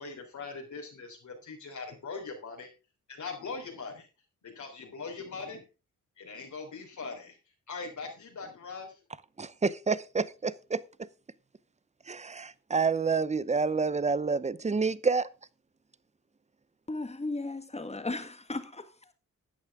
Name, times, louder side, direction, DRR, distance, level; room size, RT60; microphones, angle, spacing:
voice 1, 0.0-2.7 3.1-4.1 4.4-5.6 6.2-7.4 7.7-9.0, left 4 dB, 70° left, 3.5 m, -41 dB
voice 2, 9.4-11.1 12.1-15.3, right 4 dB, 20° right, 0.7 m, -29 dB
voice 3, 16.9-19.1, left 2 dB, 20° left, 1.6 m, -36 dB
12.5 x 8.9 x 3.6 m
cardioid pair, 85°, 31 cm